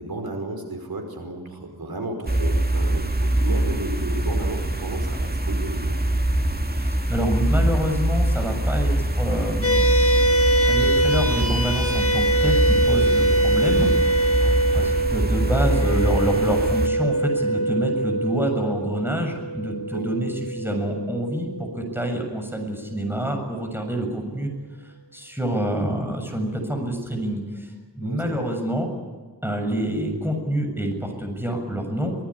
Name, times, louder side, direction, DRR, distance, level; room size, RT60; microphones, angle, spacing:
voice 1, 0.0-6.0 14.4-14.9 19.9-20.1 28.0-28.4, right 2 dB, 65° right, 4 dB, 5.1 m, -33 dB
sound 1, 2.3-16.9, right 1 dB, 25° right, 2.0 m, -23 dB
voice 2, 6.8-9.9 10.7-13.9 14.7-24.5 25.1-28.9 29.4-32.1, right 1 dB, 5° right, 4 dB, 7.0 m, -27 dB
sound 2, 9.6-22.3, right 1 dB, 35° left, 6.2 m, -23 dB
25.5 x 19.0 x 9.9 m, 1.4 s
wide cardioid pair, 90°, 38 cm